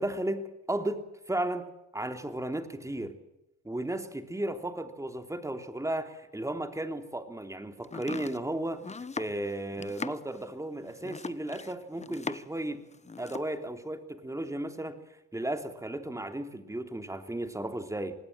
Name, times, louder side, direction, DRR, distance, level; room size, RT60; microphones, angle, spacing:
voice 1, 0.0-3.2 3.6-8.8 9.2-12.8 13.2-15.0 15.3-18.1, right 1 dB, 10° right, 8 dB, 3.3 m, -34 dB
Domestic sounds home sounds, 7.8-12.6 12.9-13.5, left 4 dB, 20° left, 1.1 m, -40 dB
25.5 x 19.5 x 7.5 m, 0.93 s
cardioid pair, 90°, 30 cm